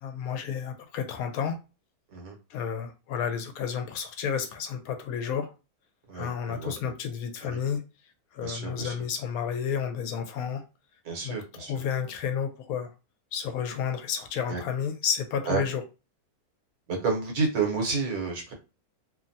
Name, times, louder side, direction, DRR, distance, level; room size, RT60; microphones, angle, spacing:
voice 1, 0.0-1.5 2.5-5.5 6.1-7.8 8.3-10.6 11.2-11.4 11.7-12.9 13.3-15.8, left 7 dB, 75° left, 1.0 m, -31 dB
voice 2, 6.1-6.9 7.4-7.6 8.4-8.9 11.0-11.7 14.5-14.6 15.5-15.6 16.9-18.5, right 4 dB, 80° right, 1.5 m, -30 dB
3.0 x 2.2 x 2.6 m
omnidirectional pair, 1.6 m